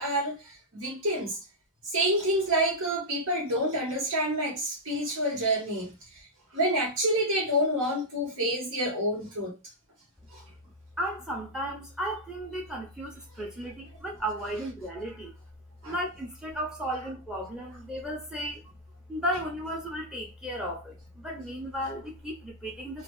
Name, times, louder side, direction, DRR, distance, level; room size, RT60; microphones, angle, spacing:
voice 1, 0.0-1.4 1.8-6.3 6.5-9.6 10.3-10.4 15.8-15.9, right 1 dB, 70° right, 1.4 m, -28 dB
voice 2, 11.0-15.3 15.8-18.8 19.1-23.0, equal, 5° right, 0.8 m, -34 dB
3.2 x 2.5 x 2.3 m
head